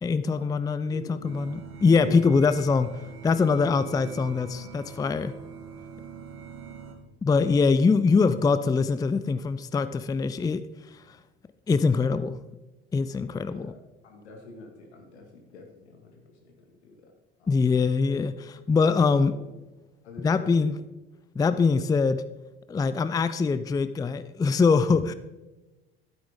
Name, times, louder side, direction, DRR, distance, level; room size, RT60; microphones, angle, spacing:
voice 1, 0.0-2.9 3.2-5.3 7.2-10.6 11.7-12.4 12.9-13.7 17.5-19.3 20.2-20.8 21.4-22.2 22.7-25.1, left 4 dB, 10° left, 13 dB, 0.4 m, -23 dB
voice 2, 0.6-1.3 2.1-2.3 7.4-7.6 13.5-13.8 14.0-16.5 16.8-17.1 17.4-17.6 18.8-19.0 19.3-19.5 20.0-20.7, left 2 dB, 80° left, 3 dB, 2.0 m, -45 dB
sound 1, 1.2-6.9, right 6 dB, 80° right, 1.5 m, -44 dB
12.0 x 9.5 x 3.7 m, 1.1 s
hypercardioid pair, 65°, 33 cm